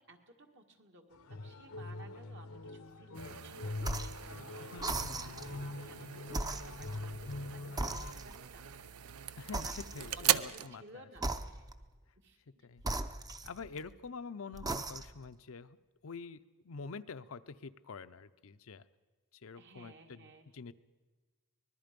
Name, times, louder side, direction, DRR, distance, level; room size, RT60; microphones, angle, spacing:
voice 1, 0.1-8.6 9.6-10.1 10.3-11.7 12.2-12.7 19.6-20.5, right 2 dB, 55° right, 4 dB, 2.0 m, -57 dB
sound 1, 1.1-8.1, left 2 dB, 85° left, 0.9 m, -44 dB
sound 2, 3.1-10.7, right 11 dB, 80° right, 0.6 m, -39 dB
sound 3, 3.8-4.2 4.8-5.6 6.3-7.4 7.8-8.6 9.5-10.3 11.2-11.9 12.8-13.9 14.5-15.3, right 2 dB, 15° right, 0.7 m, -38 dB
voice 2, 4.6-5.8 9.4-9.7 9.9-11.0 12.6-12.8 13.4-15.8 16.0-16.4 16.6-18.8 19.4-20.3 20.5-20.7, left 4 dB, 65° left, 12 dB, 0.6 m, -46 dB
24.5 x 20.0 x 5.2 m, 1.3 s
head